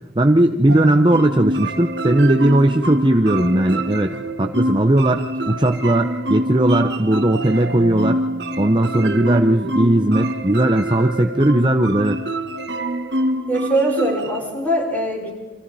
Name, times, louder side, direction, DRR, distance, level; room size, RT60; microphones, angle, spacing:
voice 1, 0.2-8.2 8.6-12.2, right 1 dB, 25° right, 5 dB, 0.8 m, -17 dB
sound 1, 0.7-14.4, right 1 dB, 65° right, 1.6 m, -25 dB
voice 2, 13.5-15.3, right 1 dB, 10° left, -2 dB, 6.0 m, -22 dB
29.5 x 26.0 x 4.2 m, 1.2 s
head